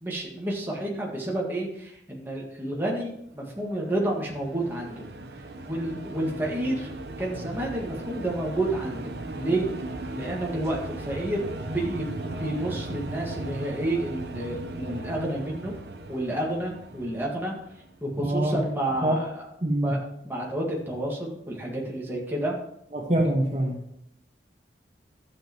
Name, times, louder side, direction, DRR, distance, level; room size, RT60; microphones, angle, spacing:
voice 1, 0.0-5.1 5.7-6.9 7.2-9.7 10.1-15.7 16.1-17.5 18.0-19.5 19.8-20.0 20.2-22.6, right 1 dB, 10° right, -3 dB, 1.8 m, -30 dB
sound 1, 3.6-18.1, right 2 dB, 70° right, 0.8 m, -37 dB
voice 2, 18.2-18.6 19.0-19.2 19.6-19.9 22.9-23.8, right 1 dB, 40° right, -1 dB, 1.4 m, -24 dB
13.0 x 7.6 x 3.0 m, 0.75 s
head